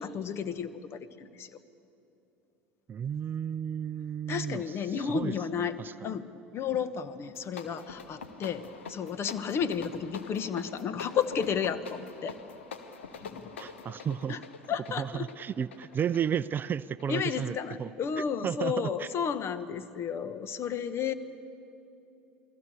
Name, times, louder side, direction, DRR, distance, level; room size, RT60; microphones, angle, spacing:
voice 1, 0.0-1.6 4.3-5.8 6.0-6.3 6.5-12.4 13.2-13.5 14.3-14.4 14.7-15.3 17.1-21.1, left 7 dB, 40° left, 13 dB, 1.3 m, -32 dB
voice 2, 2.9-6.2 13.6-14.4 15.0-17.9 18.4-19.1, right 8 dB, 30° right, 16 dB, 0.5 m, -33 dB
sound 1, 7.2-17.6, left 5 dB, 80° left, 1.4 m, -45 dB
28.5 x 20.5 x 6.9 m, 2.8 s
figure-of-eight pair, 70°, 6 cm